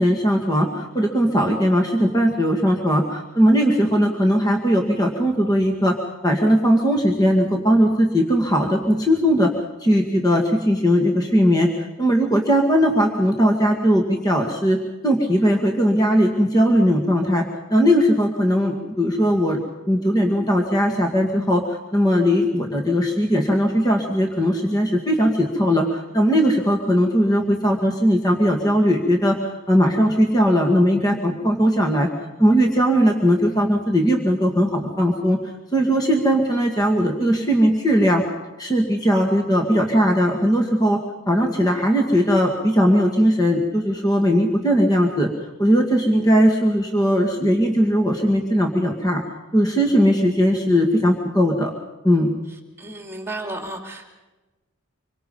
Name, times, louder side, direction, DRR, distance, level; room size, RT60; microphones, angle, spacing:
voice 1, 0.0-6.0 6.2-9.5 9.8-11.7 12.0-14.8 15.0-29.4 29.7-32.1 32.4-35.4 35.7-38.2 38.6-41.0 41.3-45.3 45.6-49.2 49.5-51.7 52.0-52.3, equal, 15° left, 2 dB, 2.1 m, -19 dB
voice 2, 52.8-54.1, right 2 dB, 10° right, 3 dB, 2.9 m, -32 dB
26.5 x 23.5 x 5.5 m, 1.1 s
head